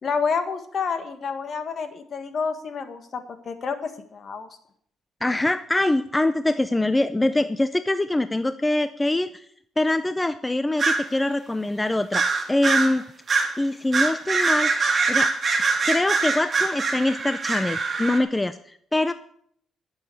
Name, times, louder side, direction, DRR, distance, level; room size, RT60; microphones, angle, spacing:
voice 1, 0.0-4.5, left 5 dB, 50° left, 8 dB, 1.7 m, -29 dB
voice 2, 5.2-9.5 9.8-13.0 13.6-14.7 15.1-15.3 15.8-19.1, left 2 dB, 15° left, 12 dB, 0.5 m, -24 dB
sound 1, 10.8-11.0 12.1-12.9 13.3-13.5 13.9-18.2, right 4 dB, 35° right, 2.6 m, -23 dB
11.5 x 7.1 x 7.8 m, 0.64 s
cardioid pair, 90°, 0 cm